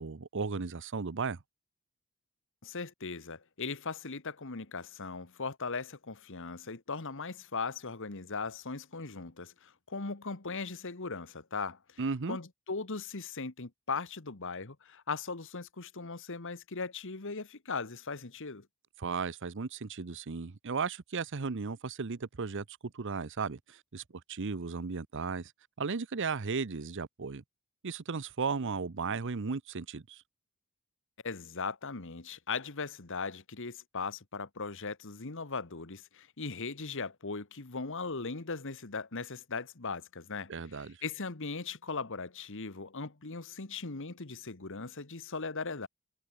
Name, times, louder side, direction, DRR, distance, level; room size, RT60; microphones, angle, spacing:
voice 1, 0.0-1.4 12.0-12.4 19.0-24.0 24.3-25.5 25.8-27.4 27.8-30.2 40.5-41.0, right 4 dB, 55° right, 0.7 m, -35 dB
voice 2, 2.6-12.0 12.3-18.7 31.2-45.9, left 4 dB, 60° left, 1.6 m, -39 dB
head